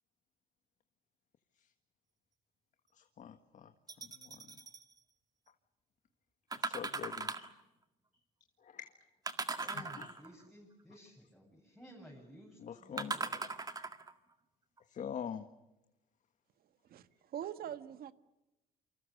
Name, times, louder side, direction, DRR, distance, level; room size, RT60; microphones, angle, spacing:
voice 1, 2.9-3.7 4.0-4.6 6.6-7.5 8.6-8.9 9.5-9.7 10.0-10.1 12.6-13.3 14.9-15.5, left 8 dB, 45° left, 1.6 m, -45 dB
sound 1, 3.9-4.8 6.5-7.6 9.3-10.4 13.0-14.1 14.8-14.9, right 3 dB, 20° right, 1.9 m, -39 dB
voice 2, 9.6-13.4, equal, ahead, 7.9 m, -55 dB
voice 3, 16.9-18.1, right 10 dB, 60° right, 1.6 m, -43 dB
28.5 x 25.5 x 6.6 m
cardioid pair, 110°, 17 cm